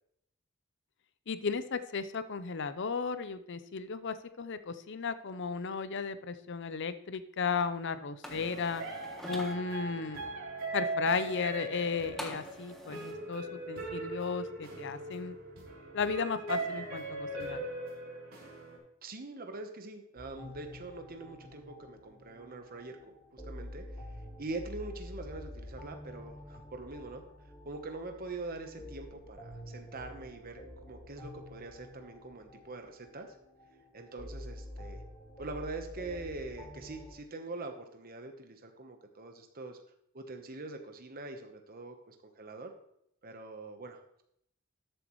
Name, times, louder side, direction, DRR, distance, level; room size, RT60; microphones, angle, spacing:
voice 1, 1.3-8.8 9.3-10.2 10.7-15.4 15.9-17.6, left 5 dB, 55° left, 12 dB, 0.6 m, -35 dB
sound 1, 8.2-9.5 12.2-13.1, equal, ahead, 1.2 m, -45 dB
sound 2, 8.3-18.8, right 2 dB, 65° right, 3.6 m, -39 dB
voice 2, 19.0-23.0 23.3-23.8 24.4-27.2 27.6-33.4 33.9-35.0 35.4-39.8 40.1-42.7 43.2-44.0, right 3 dB, 45° right, 5 dB, 1.1 m, -43 dB
sound 3, 20.2-37.1, left 1 dB, 20° left, 3.8 m, -48 dB
13.0 x 8.1 x 3.1 m, 0.74 s
head